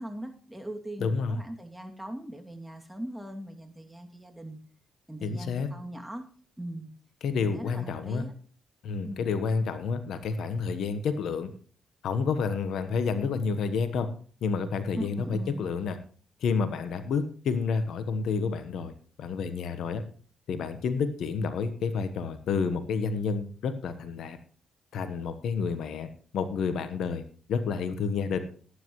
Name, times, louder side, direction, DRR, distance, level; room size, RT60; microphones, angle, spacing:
voice 1, 0.0-4.6 5.1-6.3 6.6-6.9 7.3-8.3 9.0-9.3 15.0-15.7, right 1 dB, 10° right, 4 dB, 2.6 m, -40 dB
voice 2, 1.0-1.4 5.2-5.7 7.2-8.2 8.8-11.5 12.0-14.1 14.4-16.0 16.4-18.9 19.2-20.0 20.5-24.4 24.9-26.1 26.3-27.2 27.5-28.5, left 5 dB, 70° left, 10 dB, 1.2 m, -29 dB
18.0 x 9.8 x 3.2 m, 0.43 s
hypercardioid pair, 45°, 0 cm